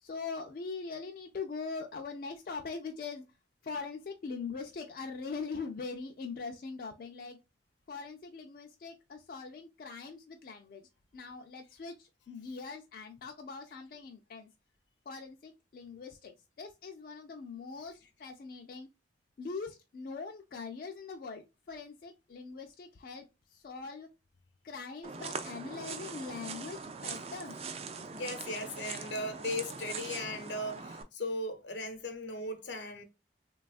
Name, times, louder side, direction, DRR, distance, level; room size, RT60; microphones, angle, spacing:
voice 1, 0.0-3.2 3.6-7.4 7.9-10.8 11.1-14.5 15.1-18.9 19.4-23.2 23.5-24.1 24.6-27.7, left 4 dB, 50° left, 0.3 m, -42 dB
sound 1, 25.0-31.0, right 5 dB, 35° right, 0.3 m, -42 dB
voice 2, 28.1-33.0, left 1 dB, 80° left, 0.7 m, -37 dB
3.3 x 2.3 x 2.3 m
head